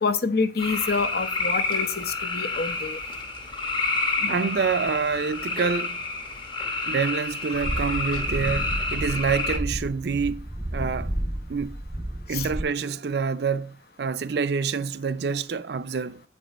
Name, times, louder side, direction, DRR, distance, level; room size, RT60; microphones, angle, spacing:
voice 1, 0.0-3.0 4.2-4.4 12.3-12.5, left 4 dB, 55° left, 0.7 m, -27 dB
sound 1, 0.6-9.6, left 3 dB, 25° left, 1.0 m, -29 dB
voice 2, 4.3-6.0 6.8-10.5 10.7-11.1 11.5-11.8 12.3-16.2, right 5 dB, 60° right, 0.5 m, -27 dB
sound 2, 7.5-12.6, right 1 dB, 10° right, 0.4 m, -31 dB
8.2 x 5.3 x 4.2 m
head